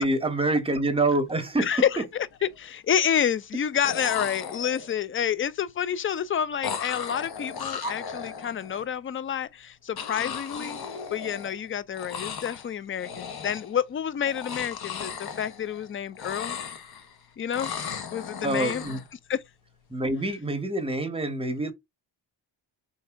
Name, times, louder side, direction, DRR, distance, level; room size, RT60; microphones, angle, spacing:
voice 1, 0.0-2.0 7.8-7.9 18.4-19.0 19.9-21.7, right 2 dB, 10° right, 0.9 m, -26 dB
sound 1, 1.4-1.6 1.9-2.5 3.6-3.7 3.8-5.1 6.6-8.8 10.0-11.7 11.9-12.7 13.0-13.8 14.2-15.9 16.1-17.1 17.5-19.1, left 7 dB, 55° left, 1.0 m, -36 dB
voice 2, 1.6-2.0 2.4-10.8 11.1-16.6 17.4-17.7 18.1-18.8 19.3-19.4, left 8 dB, 30° left, 0.4 m, -28 dB
4.4 x 2.8 x 3.4 m
cardioid pair, 120°, 44 cm